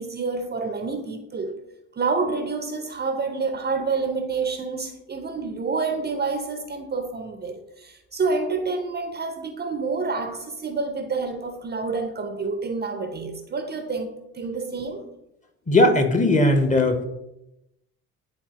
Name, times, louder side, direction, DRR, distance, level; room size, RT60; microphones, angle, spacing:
voice 1, 0.0-1.6 1.9-15.1, right 4 dB, 25° right, 7 dB, 0.7 m, -28 dB
voice 2, 15.7-17.0, left 1 dB, 15° left, 7 dB, 1.0 m, -18 dB
10.5 x 4.1 x 3.0 m, 0.90 s
figure-of-eight pair, 55°, 43 cm